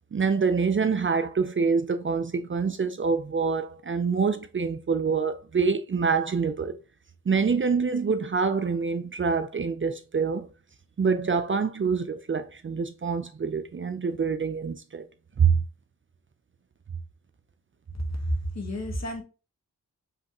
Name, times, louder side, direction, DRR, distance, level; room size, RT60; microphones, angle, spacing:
voice 1, 0.1-6.8 7.3-10.5 11.0-15.0 15.4-15.6, right 5 dB, 35° right, 0.5 m, -26 dB
voice 2, 18.2-19.2, equal, 50° left, 1.5 m, -30 dB
4.9 x 3.2 x 3.0 m
cardioid pair, 60°, 34 cm